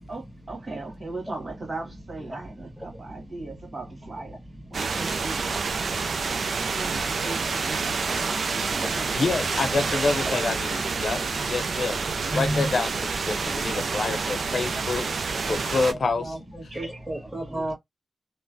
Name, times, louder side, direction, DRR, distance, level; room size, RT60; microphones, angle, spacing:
voice 1, 0.1-4.4 4.7-5.9 6.7-9.2 9.7-10.0 17.4-17.7, right 2 dB, 60° right, 1.5 m, -38 dB
sound 1, 4.7-15.9, right 4 dB, 80° right, 0.4 m, -28 dB
voice 2, 9.1-12.0 12.3-15.1 15.4-16.4, left 3 dB, 70° left, 0.6 m, -27 dB
voice 3, 12.3-12.7 13.7-13.8 16.2-17.7, right 1 dB, 15° right, 1.6 m, -31 dB
3.0 x 2.1 x 2.5 m
cardioid pair, 60°, 0 cm